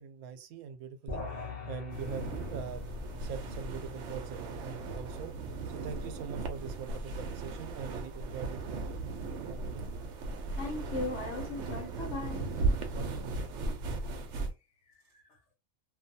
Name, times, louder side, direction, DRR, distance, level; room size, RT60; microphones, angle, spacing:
voice 1, 0.0-2.8 3.2-5.3 5.6-9.0 9.5-9.9 12.9-13.3, right 7 dB, 85° right, 1.0 m, -43 dB
sound 1, 1.1-6.6, left 4 dB, 40° left, 0.7 m, -44 dB
sound 2, 1.9-14.5, right 3 dB, 65° right, 0.8 m, -37 dB
voice 2, 10.6-12.5 15.1-15.2, left 2 dB, 60° left, 1.2 m, -38 dB
2.6 x 2.3 x 2.6 m
omnidirectional pair, 1.4 m